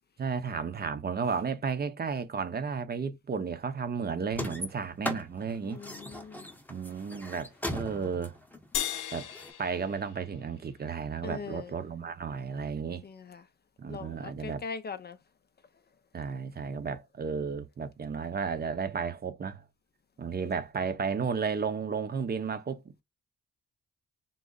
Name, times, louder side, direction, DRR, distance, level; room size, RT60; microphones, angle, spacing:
voice 1, 0.2-5.8 6.7-8.4 9.1-9.3 9.6-13.0 13.8-14.6 16.1-19.6 20.2-23.0, right 5 dB, 30° right, 0.7 m, -33 dB
sound 1, 4.3-9.5, equal, 5° left, 0.8 m, -38 dB
voice 2, 5.6-6.5 11.2-11.7 13.0-13.4 13.9-15.2, left 5 dB, 35° left, 0.4 m, -41 dB
sound 2, 8.7-11.3, left 11 dB, 85° left, 0.7 m, -37 dB
3.7 x 2.0 x 3.8 m
cardioid pair, 90°, 30 cm